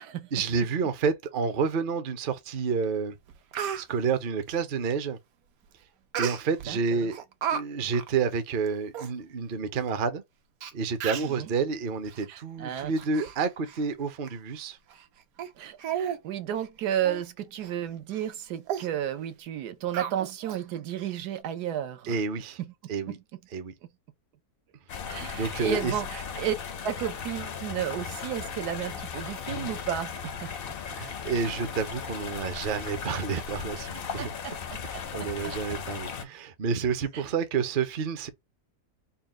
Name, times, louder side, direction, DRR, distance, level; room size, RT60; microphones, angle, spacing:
voice 1, 0.3-3.1 3.8-5.2 6.2-7.2 7.5-10.2 10.7-14.8 22.0-22.6 22.9-23.2 23.5-23.7 25.3-25.9 30.9-34.3 35.1-38.3, right 5 dB, 55° right, 0.6 m, -29 dB
Speech, 2.8-2.9 3.3-3.8 6.1-6.7 7.1-7.6 7.9-8.1 8.7-8.8 8.9-9.1 9.9-10.0 10.6-10.7 11.0-11.4 12.0-12.2 12.7-13.4 13.7-13.8 14.3-14.4 14.9-15.0 15.4-15.5 15.8-16.2 16.5-16.7 17.0-17.2 17.6-17.7 18.1-18.3 18.7-18.9 19.9-20.6 21.0-21.1, right 9 dB, 70° right, 1.1 m, -33 dB
voice 2, 6.7-7.1 11.2-11.5 12.3-12.9 15.6-22.2 22.6-22.7 25.1-26.6 26.8-30.5 34.2-34.5 37.1-37.2, right 10 dB, 90° right, 1.3 m, -33 dB
sound 1, 24.9-36.2, left 6 dB, 65° left, 0.5 m, -37 dB
4.1 x 2.2 x 3.6 m
omnidirectional pair, 1.7 m